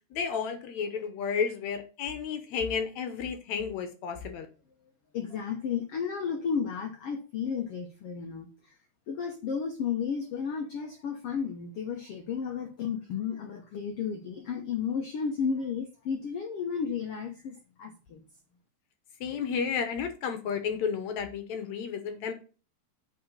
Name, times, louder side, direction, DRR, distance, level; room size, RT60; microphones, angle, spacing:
voice 1, 0.1-4.5 19.2-22.3, left 6 dB, 70° left, 8 dB, 1.8 m, -32 dB
voice 2, 5.1-8.7 9.1-18.2, left 6 dB, 85° left, 4 dB, 1.3 m, -33 dB
8.6 x 3.9 x 6.5 m, 0.36 s
omnidirectional pair, 4.2 m